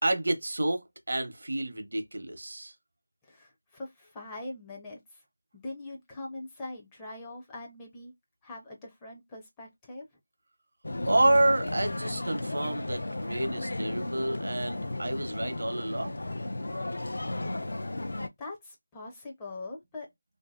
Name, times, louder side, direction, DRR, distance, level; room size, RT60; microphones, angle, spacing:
voice 1, 0.0-2.7 11.0-16.2, right 1 dB, 65° right, 0.7 m, -29 dB
voice 2, 3.2-5.2 5.5-8.1 8.4-10.0 18.4-20.1, left 2 dB, 10° left, 0.5 m, -42 dB
sound 1, 10.8-18.3, left 2 dB, 65° left, 0.5 m, -34 dB
2.6 x 2.5 x 2.3 m
figure-of-eight pair, 170°, 0 cm